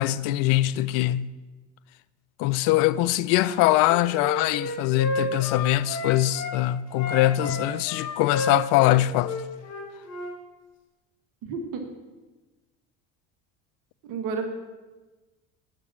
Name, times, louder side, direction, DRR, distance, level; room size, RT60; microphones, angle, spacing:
voice 1, 0.0-1.3 2.4-9.4, left 15 dB, 65° left, 0.5 m, -22 dB
Wind instrument woodwind instrument, 3.3-6.6 6.9-10.3, left 2 dB, 45° left, 1.9 m, -31 dB
voice 2, 11.4-11.8 14.0-14.4, right 5 dB, 65° right, 1.4 m, -31 dB
9.6 x 5.8 x 7.4 m
supercardioid pair, 85°, 35 cm